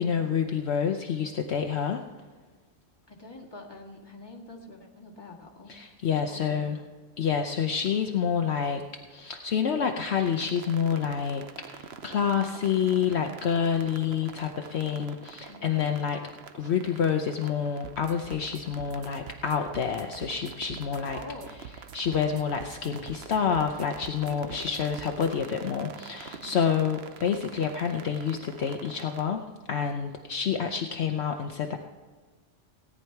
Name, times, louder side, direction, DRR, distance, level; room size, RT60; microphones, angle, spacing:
voice 1, 0.0-2.0 5.7-6.8 7.2-8.8 9.1-16.2 16.6-21.2 21.9-31.8, left 7 dB, 65° left, 5 dB, 1.0 m, -28 dB
voice 2, 3.1-5.8 6.2-6.7 15.4-15.8 21.1-21.5 24.3-25.0 26.4-26.8, left 2 dB, 20° left, -1 dB, 1.8 m, -45 dB
sound 1, 10.2-29.2, right 6 dB, 60° right, 1.0 m, -47 dB
sound 2, 17.8-25.5, right 8 dB, 85° right, 1.2 m, -47 dB
17.5 x 9.7 x 4.6 m, 1.4 s
omnidirectional pair, 1.3 m